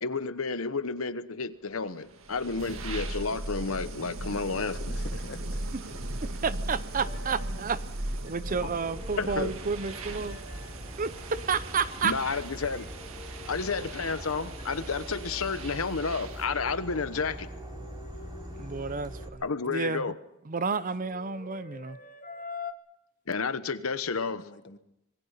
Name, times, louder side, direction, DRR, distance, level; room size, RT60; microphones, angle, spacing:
voice 1, 0.0-4.9 9.2-9.5 12.0-12.9 13.5-17.5 19.4-20.1 23.3-24.4, left 4 dB, 80° left, 1.1 m, -31 dB
sound 1, 2.0-16.6, right 1 dB, 75° right, 1.8 m, -38 dB
voice 2, 4.9-5.8 24.1-24.8, left 2 dB, 55° left, 1.4 m, -45 dB
voice 3, 6.2-7.8 8.2-10.4 11.0-12.1 13.3-13.4 18.6-19.4 19.7-20.1 20.5-22.0, right 5 dB, 40° right, 0.7 m, -31 dB
sound 2, 6.9-14.1 14.6-19.8 20.7-22.7, left 4 dB, 40° left, 1.2 m, -48 dB
Insect / Frog, 8.5-19.3, equal, 20° right, 3.1 m, -43 dB
26.0 x 21.0 x 5.7 m
head